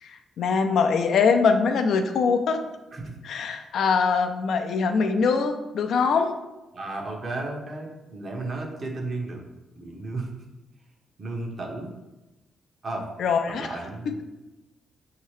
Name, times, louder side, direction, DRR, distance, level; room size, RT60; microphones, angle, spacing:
voice 1, 0.4-2.6 3.2-6.3 13.2-13.7, left 5 dB, 75° left, 6 dB, 0.4 m, -22 dB
voice 2, 6.7-9.4 9.8-10.3 11.2-11.9 12.8-13.1 13.6-14.1, right 2 dB, 50° right, 1 dB, 0.9 m, -33 dB
5.5 x 2.8 x 3.1 m, 1.0 s
cardioid pair, 75°, 0 cm